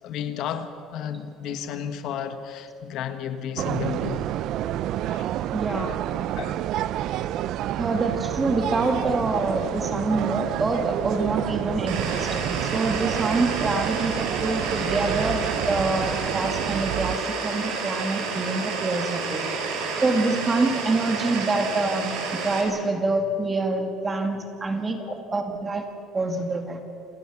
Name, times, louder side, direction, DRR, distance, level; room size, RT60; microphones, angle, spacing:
voice 1, 0.0-4.3 5.1-5.3 5.7-5.9 6.4-6.6 13.7-13.8 14.2-14.3 25.0-25.2, left 8 dB, 55° left, 9 dB, 1.3 m, -33 dB
sound 1, 3.6-17.2, right 12 dB, 55° right, 0.6 m, -29 dB
voice 2, 5.5-5.9 7.8-19.4 20.0-25.0 25.3-25.8 26.1-26.8, right 3 dB, 15° right, 5 dB, 2.2 m, -26 dB
sound 2, 11.9-22.6, right 4 dB, 80° right, 5.2 m, -30 dB
28.0 x 18.0 x 7.2 m, 2.6 s
cardioid pair, 165°, 0 cm